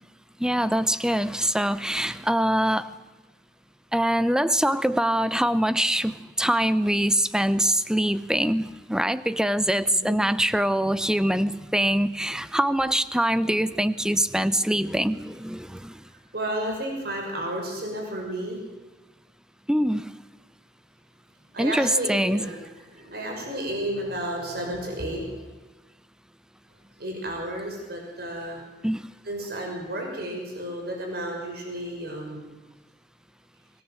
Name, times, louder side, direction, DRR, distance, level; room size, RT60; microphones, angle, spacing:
voice 1, 0.4-2.9 3.9-16.0 19.7-20.1 21.6-22.4 28.8-29.1, right 1 dB, 5° right, 14 dB, 0.8 m, -24 dB
voice 2, 16.3-18.6 21.5-22.6 22.9-25.5 27.0-28.7 29.2-32.5, right 1 dB, 60° right, 1 dB, 6.4 m, -32 dB
24.0 x 20.0 x 7.7 m, 1.2 s
head